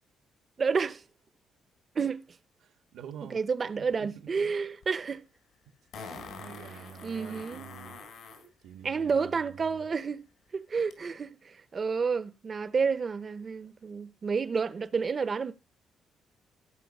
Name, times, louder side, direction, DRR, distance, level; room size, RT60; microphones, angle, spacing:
voice 1, 0.6-1.0 1.9-2.3 3.3-5.3 7.0-7.7 8.8-10.2 10.5-15.5, right 5 dB, 40° right, 0.8 m, -30 dB
voice 2, 2.6-3.4 3.7-4.5 6.0-8.0 8.6-9.9, right 8 dB, 80° right, 1.5 m, -47 dB
Fart, 4.8-4.9 5.9-8.5 10.9-11.0, left 5 dB, 80° left, 3.8 m, -45 dB
15.5 x 5.4 x 5.4 m
cardioid pair, 90°, 0 cm